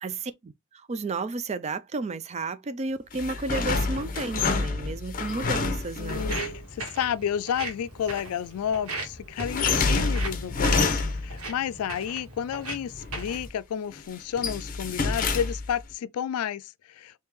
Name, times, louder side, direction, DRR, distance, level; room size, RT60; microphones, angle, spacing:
voice 1, 0.0-6.3, right 3 dB, 30° right, 0.4 m, -32 dB
sound 1, 3.1-6.6 9.4-11.4 12.9-13.5 13.9-15.8, left 4 dB, 40° left, 0.7 m, -27 dB
voice 2, 6.0-17.1, left 8 dB, 90° left, 0.3 m, -31 dB
Walk footsteps, 6.1-13.5, right 2 dB, 90° right, 1.5 m, -39 dB
3.5 x 2.8 x 3.0 m
head